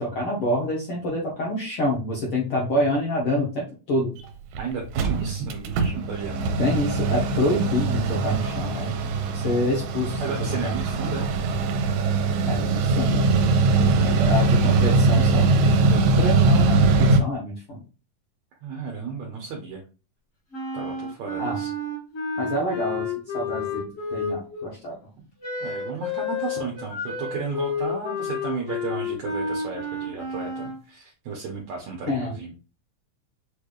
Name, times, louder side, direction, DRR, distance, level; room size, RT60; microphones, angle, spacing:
voice 1, 0.0-4.1 6.6-8.9 9.3-10.2 10.6-10.8 12.5-13.2 13.7-17.8 21.4-21.6 22.4-23.0 23.3-24.9 32.1-32.3, left 1 dB, 65° left, -3 dB, 1.4 m, -27 dB
Mechanical fan, 4.2-4.3 4.6-4.7 4.8-17.2, right 3 dB, 85° right, 2.3 m, -21 dB
voice 2, 4.6-6.5 10.2-11.4 13.9-14.7 18.6-19.8 20.7-21.7 25.6-32.5, right 5 dB, 65° right, -1 dB, 2.0 m, -33 dB
Wind instrument woodwind instrument, 20.5-24.7 25.4-30.8, left 4 dB, 45° left, 1.0 m, -30 dB
6.5 x 3.3 x 2.4 m, 0.33 s
omnidirectional pair, 3.9 m